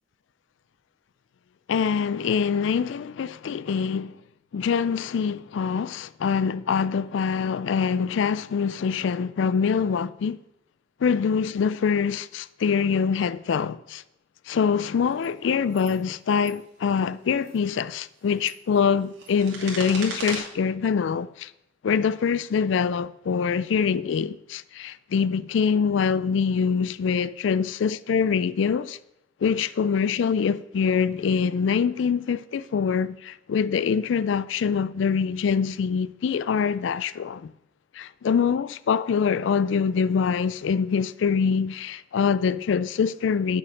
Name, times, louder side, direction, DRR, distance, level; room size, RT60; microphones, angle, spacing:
voice 1, 1.7-4.2 4.5-10.4 11.0-14.0 14.5-21.5 21.8-29.0 29.4-37.5 37.9-43.6, left 6 dB, 65° left, 0.3 m, -24 dB
sound 1, 15.1-15.3 15.7-16.0 16.3-16.5 17.3-17.6 18.2-20.4, right 4 dB, 60° right, 2.5 m, -37 dB
8.6 x 6.4 x 6.3 m
head